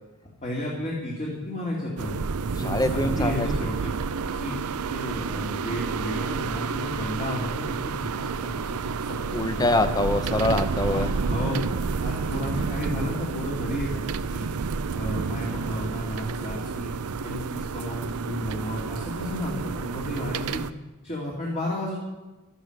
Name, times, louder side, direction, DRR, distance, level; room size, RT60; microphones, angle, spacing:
voice 1, 0.4-2.2 2.6-3.9 4.3-4.6 4.9-9.6 10.3-10.4 10.9-11.6 12.0-14.0 14.3-14.5 14.9-16.9 17.2-20.7 21.0-22.0, left 1 dB, 30° left, -4 dB, 2.5 m, -32 dB
sound 1, 2.0-20.7, right 5 dB, 85° right, 0.5 m, -30 dB
voice 2, 2.6-3.7 9.3-11.1, left 1 dB, 15° left, 10 dB, 0.7 m, -25 dB
12.5 x 11.0 x 6.6 m, 1.1 s
head